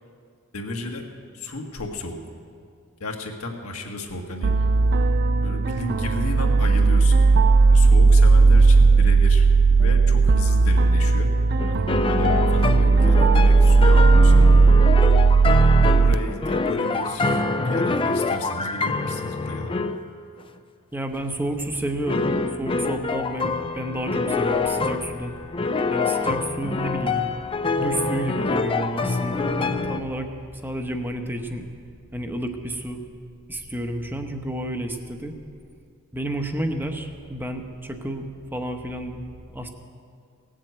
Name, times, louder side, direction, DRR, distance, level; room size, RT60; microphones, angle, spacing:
voice 1, 0.5-1.1 1.3-2.3 3.0-4.7 5.4-7.2 7.7-9.5 9.8-11.3 11.7-14.6 15.4-19.7, left 2 dB, 75° left, 2 dB, 1.6 m, -33 dB
sound 1, 4.4-16.1, right 4 dB, 45° right, 0.4 m, -16 dB
sound 2, 11.6-20.0 22.1-30.0, left 3 dB, 25° left, 0.5 m, -25 dB
voice 2, 20.9-25.4 25.9-27.2 27.7-30.3 30.6-31.7 32.1-33.0 33.5-35.4 36.1-38.3 38.5-39.7, right 1 dB, 10° right, 5 dB, 1.0 m, -30 dB
18.0 x 7.5 x 8.1 m, 2.3 s
head